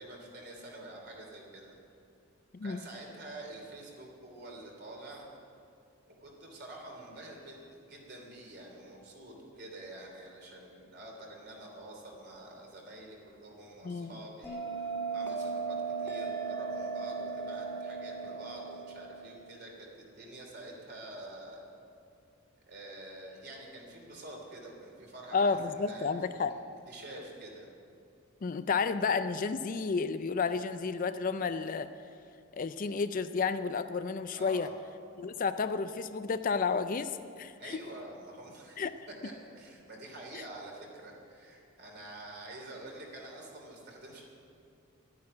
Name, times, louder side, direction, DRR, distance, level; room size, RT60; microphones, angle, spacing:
voice 1, 0.0-1.7 2.6-5.3 6.1-21.6 22.7-26.6 26.9-27.7 34.3-34.7 37.6-38.8 39.2-44.2, right 1 dB, 50° right, 0 dB, 3.0 m, -47 dB
Bell, 14.4-19.5, right 5 dB, 10° left, 1.7 m, -37 dB
voice 2, 25.3-26.5 28.4-31.9 32.6-34.7 35.2-37.8 38.8-39.0 40.3-40.4, left 5 dB, 40° left, 11 dB, 0.4 m, -31 dB
11.5 x 9.5 x 8.7 m, 2.5 s
head